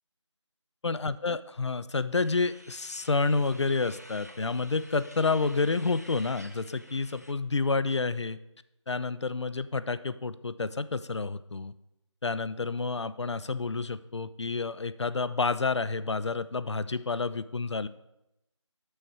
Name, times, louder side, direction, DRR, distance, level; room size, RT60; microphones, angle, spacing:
voice 1, 0.8-8.4 8.9-11.7 12.2-17.9, left 4 dB, 65° left, 15 dB, 0.4 m, -29 dB
sound 1, 2.2-7.3, equal, 35° right, 0.4 m, -51 dB
6.3 x 6.2 x 4.5 m, 0.90 s
figure-of-eight pair, 180°, 16 cm